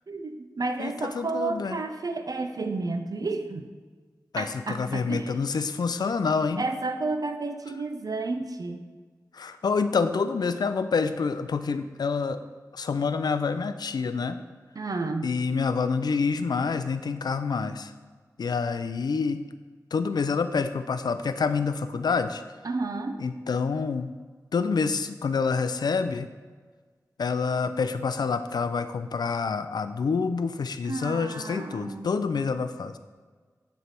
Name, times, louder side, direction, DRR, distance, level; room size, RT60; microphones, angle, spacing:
voice 1, 0.1-3.7 4.4-5.4 6.6-8.8 14.8-15.3 22.6-23.2 30.9-32.1, right 3 dB, 65° right, 7 dB, 0.6 m, -31 dB
voice 2, 0.8-1.8 4.3-6.7 9.3-12.4 12.7-14.4 15.2-17.9 18.4-19.4 19.9-22.4 23.2-24.1 24.5-26.3 27.2-33.0, left 5 dB, 80° left, 11 dB, 0.4 m, -27 dB
9.3 x 3.3 x 4.4 m, 1.5 s
cardioid pair, 50°, 7 cm